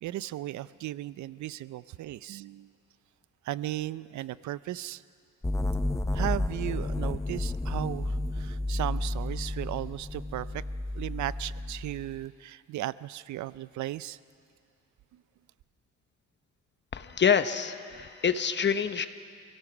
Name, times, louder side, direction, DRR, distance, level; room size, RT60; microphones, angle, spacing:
voice 1, 0.0-2.7 3.4-5.0 6.1-10.6 10.9-14.2 15.1-15.2, right 14 dB, 70° right, 17 dB, 0.5 m, -36 dB
sound 1, 5.4-12.2, left 2 dB, 10° left, 0.7 m, -32 dB
voice 2, 16.9-19.1, left 7 dB, 35° left, 11 dB, 1.0 m, -26 dB
27.0 x 17.5 x 6.1 m, 2.2 s
cardioid pair, 90°, 30 cm